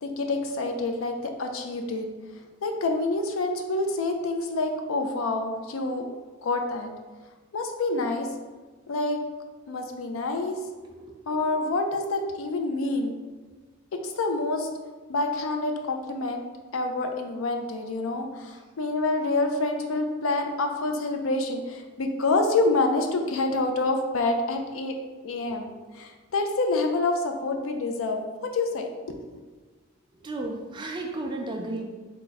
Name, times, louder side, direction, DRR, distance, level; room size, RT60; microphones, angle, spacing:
voice 1, 0.0-2.1 2.6-6.0 6.4-6.9 7.5-8.3 8.9-9.2 9.7-10.6 11.3-13.2 14.0-14.7 15.1-16.4 16.7-25.0 25.2-25.7 25.9-28.9, left 2 dB, 70° left, 5 dB, 0.4 m, -27 dB
voice 2, 10.8-11.6 18.4-18.6 25.5-25.6 30.1-31.8, right 2 dB, 20° right, 2 dB, 0.4 m, -35 dB
3.7 x 2.2 x 3.9 m, 1.3 s
head